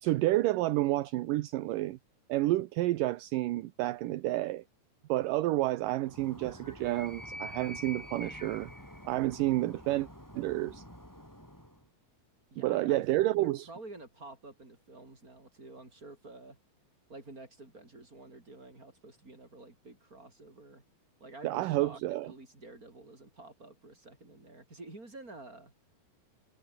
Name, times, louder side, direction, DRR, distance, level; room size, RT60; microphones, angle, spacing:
voice 1, 0.0-2.0 2.3-4.6 5.1-8.7 9.1-10.1 10.4-10.8 12.6-13.7 21.4-22.3, right 17 dB, 75° right, 2.4 m, -30 dB
Animal, 6.0-11.8, equal, 5° left, 7.1 m, -46 dB
voice 2, 12.5-16.6 17.1-20.8 21.2-25.7, right 2 dB, 25° right, 7.0 m, -50 dB
omnidirectional pair, 4.0 m